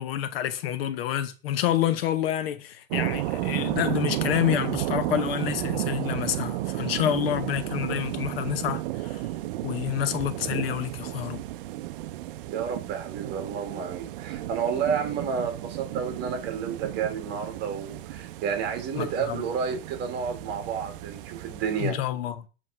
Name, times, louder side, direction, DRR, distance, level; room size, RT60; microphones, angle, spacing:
voice 1, 0.0-9.2 9.6-11.4 18.9-19.4 21.8-22.5, left 11 dB, 70° left, 0.8 m, -28 dB
sound 1, 2.9-21.9, right 15 dB, 60° right, 0.5 m, -33 dB
voice 2, 12.5-22.0, right 6 dB, 35° right, 1.7 m, -31 dB
7.6 x 3.2 x 5.4 m
supercardioid pair, 155°, 31 cm